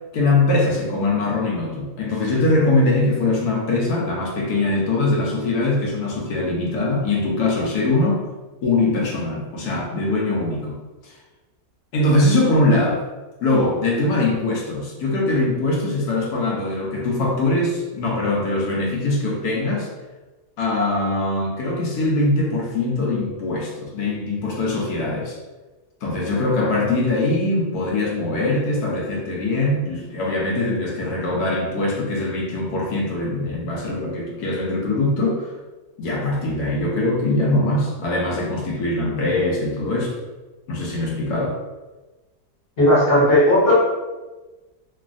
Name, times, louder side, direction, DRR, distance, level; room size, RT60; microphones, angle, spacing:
voice 1, 0.1-8.3 8.6-10.8 11.0-11.1 11.9-13.0 13.4-19.9 20.6-25.3 26.0-35.5 36.0-40.2 40.7-41.6, left 2 dB, 75° left, -2 dB, 1.2 m, -22 dB
voice 2, 42.8-43.7, left 1 dB, 45° left, -8 dB, 1.0 m, -15 dB
3.1 x 2.2 x 2.4 m, 1.2 s
omnidirectional pair, 1.7 m